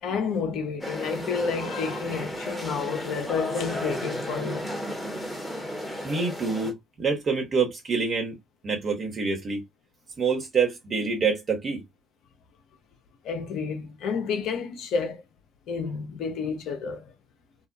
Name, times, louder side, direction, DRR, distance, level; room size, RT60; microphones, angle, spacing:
voice 1, 0.0-4.7 13.2-15.2 15.7-17.1, left 5 dB, 65° left, 0.5 m, -30 dB
sound 1, 0.8-6.7, equal, 10° left, 0.9 m, -34 dB
voice 2, 6.0-8.3 8.6-9.6 10.2-11.8, right 5 dB, 45° right, 1.2 m, -26 dB
2.3 x 2.2 x 2.6 m
hypercardioid pair, 50°, 0 cm